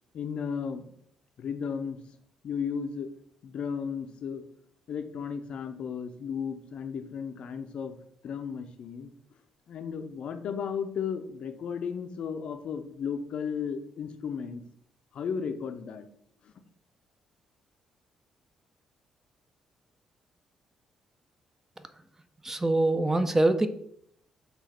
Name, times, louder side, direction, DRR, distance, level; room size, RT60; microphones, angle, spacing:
voice 1, 0.1-0.9 1.4-2.0 2.4-3.1 3.4-4.4 4.9-8.0 8.2-9.1 9.7-14.6 15.1-16.1 16.4-16.5, left 6 dB, 60° left, 8 dB, 0.4 m, -34 dB
voice 2, 22.4-23.7, right 2 dB, 20° right, 10 dB, 0.5 m, -24 dB
5.5 x 2.4 x 3.2 m, 0.68 s
hypercardioid pair, 45°, 2 cm